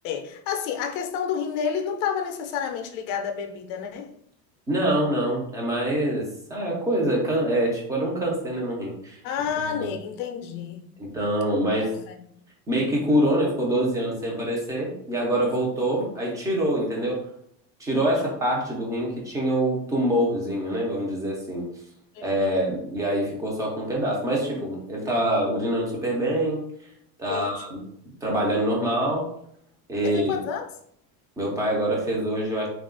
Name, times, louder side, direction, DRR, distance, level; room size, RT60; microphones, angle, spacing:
voice 1, 0.0-4.1 9.2-10.9 11.8-12.2 17.9-18.3 22.1-22.6 27.3-27.6 30.0-30.7, left 7 dB, 50° left, 0.5 m, -30 dB
voice 2, 4.7-9.2 9.8-9.9 11.0-11.9 12.7-17.2 17.8-21.7 22.2-26.6 27.2-27.8 28.2-29.3 29.9-30.4 31.4-32.7, right 1 dB, 10° right, 0.5 m, -25 dB
3.5 x 2.4 x 3.7 m
cardioid pair, 175°, 40 cm